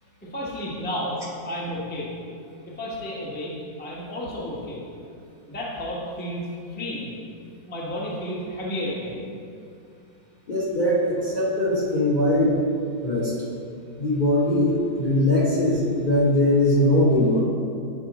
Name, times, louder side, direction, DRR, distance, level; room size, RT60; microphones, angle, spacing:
voice 1, 0.2-1.2 1.4-2.1 2.7-3.5 3.8-4.8 5.5-7.2 7.7-9.3, equal, 10° left, -5 dB, 0.6 m, -32 dB
voice 2, 10.5-12.5 13.0-13.3 14.0-17.4, left 1 dB, 35° left, -7 dB, 0.8 m, -21 dB
9.4 x 3.7 x 4.1 m, 2.4 s
omnidirectional pair, 2.1 m